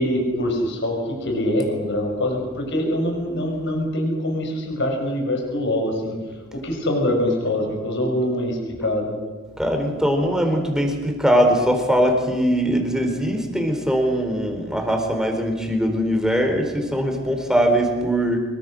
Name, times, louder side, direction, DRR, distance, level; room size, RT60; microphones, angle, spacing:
voice 1, 0.0-6.2 6.5-9.1, left 1 dB, 60° left, 2 dB, 6.0 m, -24 dB
voice 2, 9.6-18.4, equal, 5° right, 4 dB, 4.2 m, -21 dB
26.0 x 23.0 x 6.5 m, 1.3 s
head